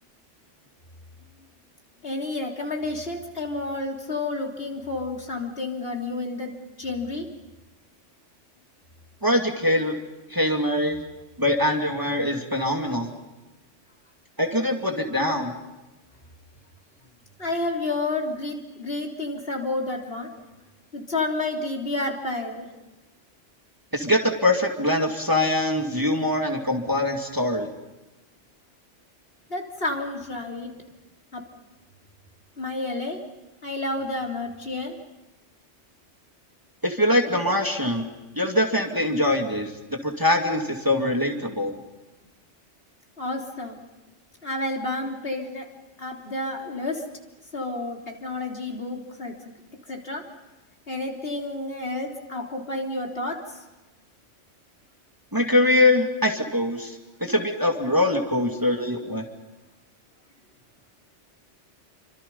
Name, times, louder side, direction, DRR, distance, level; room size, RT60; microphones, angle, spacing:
voice 1, 2.0-6.5 6.8-7.3 17.4-20.3 20.9-22.7 29.5-30.7 31.3-31.4 32.6-33.2 33.6-35.0 43.2-43.8 44.4-45.7 46.0-47.0 47.5-49.3 49.9-50.2 50.9-53.6, left 2 dB, 50° left, 1 dB, 3.7 m, -30 dB
voice 2, 9.2-10.0 10.3-11.1 11.4-13.1 14.4-15.5 23.9-27.7 36.8-38.1 38.4-39.7 40.0-41.8 55.3-59.2, left 1 dB, 15° right, 2 dB, 2.4 m, -23 dB
28.5 x 25.5 x 5.5 m, 1.1 s
omnidirectional pair, 1.3 m